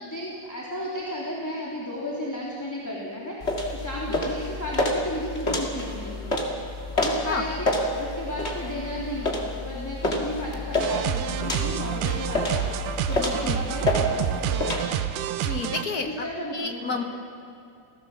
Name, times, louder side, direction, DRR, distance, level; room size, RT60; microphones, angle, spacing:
voice 1, 0.0-6.4 6.9-14.9 16.0-17.0, left 1 dB, 5° left, -5 dB, 2.8 m, -34 dB
sound 1, 3.4-14.8, left 1 dB, 25° left, 2.1 m, -28 dB
sound 2, 10.8-15.8, right 11 dB, 85° right, 2.3 m, -28 dB
voice 2, 15.4-17.0, left 3 dB, 55° left, 5 dB, 1.0 m, -31 dB
29.0 x 16.5 x 7.2 m, 2.5 s
omnidirectional pair, 3.5 m